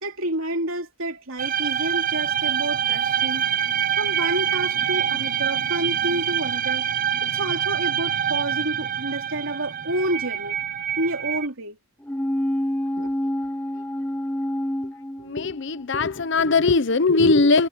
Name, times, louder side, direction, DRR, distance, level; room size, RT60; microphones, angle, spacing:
voice 1, 0.0-3.5 4.0-6.9 7.2-10.6 11.0-11.8 13.0-13.1, right 1 dB, 70° right, 3.3 m, -29 dB
sound 1, 1.4-11.5, right 9 dB, 40° right, 0.6 m, -25 dB
sound 2, 12.0-15.8 16.2-16.3, left 1 dB, 10° left, 0.9 m, -27 dB
voice 2, 15.2-17.7, left 3 dB, 55° left, 0.7 m, -20 dB
head